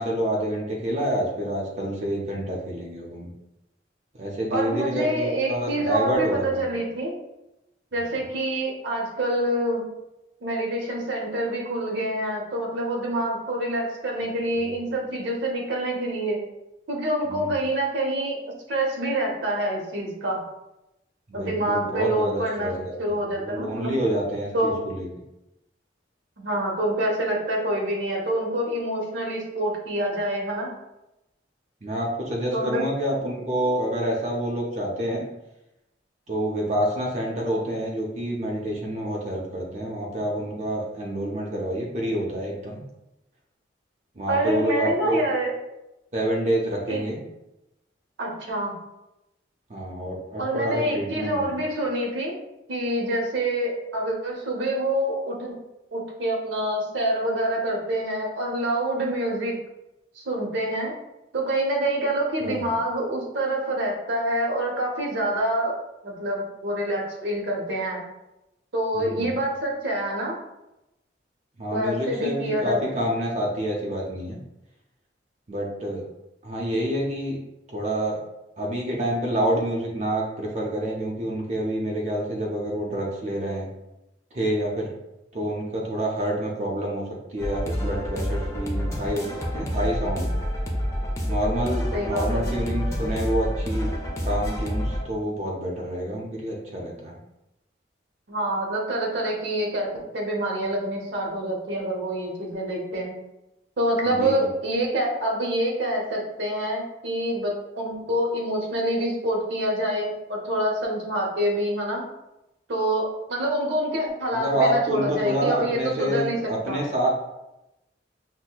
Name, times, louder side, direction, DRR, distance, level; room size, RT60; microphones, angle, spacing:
voice 1, 0.0-3.3 4.2-6.7 17.3-17.5 21.3-25.1 31.8-35.3 36.3-42.8 44.2-45.2 46.1-47.2 49.7-51.5 62.4-62.7 68.9-69.3 71.6-74.4 75.5-76.0 76.4-77.4 77.7-78.2 78.6-83.7 84.3-85.0 85.3-87.0 87.3-89.3 89.5-90.4 91.3-93.9 94.2-97.2 104.1-104.4 114.3-117.1, right 1 dB, 40° right, -2 dB, 0.5 m, -28 dB
voice 2, 4.5-7.1 7.9-9.8 10.4-16.4 16.9-18.4 18.7-20.4 21.3-22.7 23.0-24.0 24.5-24.8 26.4-30.7 32.5-32.8 44.3-45.5 46.9-47.0 48.2-48.7 50.4-52.3 52.7-55.5 55.9-59.6 60.2-60.9 61.3-65.8 66.0-68.0 68.7-70.3 71.7-72.8 73.1-73.2 91.9-92.6 98.3-99.9 100.1-103.1 103.8-112.0 112.7-116.8, right 1 dB, 75° right, -1 dB, 0.9 m, -26 dB
sound 1, 87.4-95.0, equal, 15° left, 0.5 m, -28 dB
5.8 x 2.1 x 2.3 m, 0.91 s
head